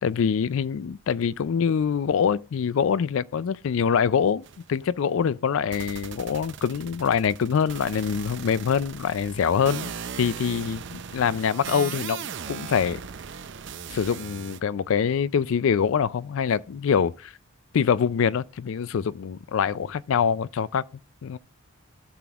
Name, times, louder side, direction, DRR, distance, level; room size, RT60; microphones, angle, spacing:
voice 1, 0.0-4.4 4.7-9.9 10.2-13.0 13.9-17.3 17.7-20.8 21.2-21.4, left 7 dB, 65° left, 0.4 m, -24 dB
sound 1, 4.4-4.7 5.7-14.6, right 7 dB, 55° right, 0.5 m, -38 dB
17.0 x 6.0 x 2.4 m
head